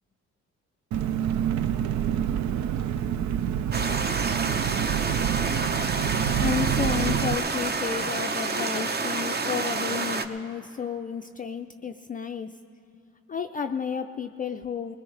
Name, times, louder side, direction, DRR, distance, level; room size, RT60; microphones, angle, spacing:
Engine, 0.9-7.3, right 9 dB, 70° right, 0.5 m, -27 dB
sound 1, 3.7-10.3, right 4 dB, 35° right, 0.8 m, -29 dB
voice 1, 6.4-12.6 13.3-15.0, left 7 dB, 30° left, 6 dB, 0.4 m, -32 dB
21.0 x 18.5 x 3.3 m, 2.4 s
cardioid pair, 90°, 30 cm